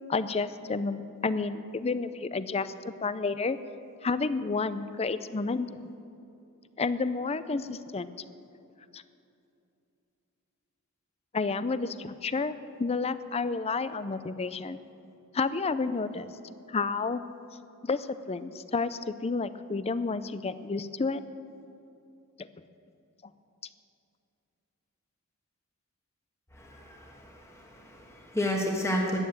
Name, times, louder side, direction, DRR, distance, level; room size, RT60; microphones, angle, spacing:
voice 1, 0.1-2.7 3.0-3.6 4.0-5.8 6.8-8.1 8.9-9.0 11.3-14.8 15.3-16.3 16.7-17.2 17.8-21.2 22.4-22.5, left 4 dB, 30° left, 14 dB, 0.5 m, -30 dB
voice 2, 26.5-29.2, left 1 dB, 15° left, -1 dB, 1.4 m, -32 dB
13.5 x 9.4 x 8.9 m, 2.7 s
head